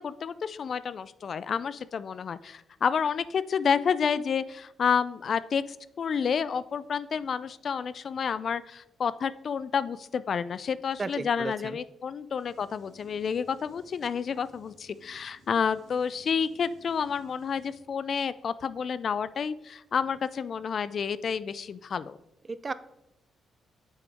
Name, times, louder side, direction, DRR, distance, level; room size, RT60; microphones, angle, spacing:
voice 1, 0.0-22.2, left 6 dB, 50° left, 16 dB, 0.3 m, -30 dB
voice 2, 11.0-11.8 22.5-22.7, right 4 dB, 30° right, 15 dB, 0.4 m, -34 dB
sound 1, 12.4-17.8, right 2 dB, 75° right, 2.9 m, -58 dB
8.9 x 6.1 x 3.4 m, 0.87 s
cardioid pair, 105°, 0 cm